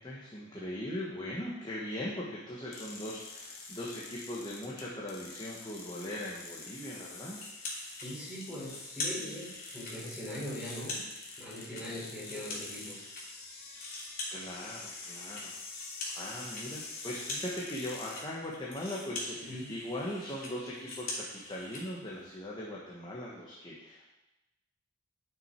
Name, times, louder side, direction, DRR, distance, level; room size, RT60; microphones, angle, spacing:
voice 1, 0.0-7.4 11.8-12.0 14.3-15.5 16.0-24.1, left 1 dB, 20° left, -5 dB, 1.2 m, -40 dB
sound 1, 2.7-18.2, left 3 dB, 80° left, 1.6 m, -47 dB
sound 2, 7.3-8.1 8.4-9.9 10.3-13.2 13.5-21.8, left 2 dB, 45° left, 2.8 m, -42 dB
voice 2, 8.0-11.0 11.4-13.0 19.4-19.7, equal, 5° right, -7 dB, 3.7 m, -41 dB
9.8 x 6.2 x 4.5 m, 0.98 s
head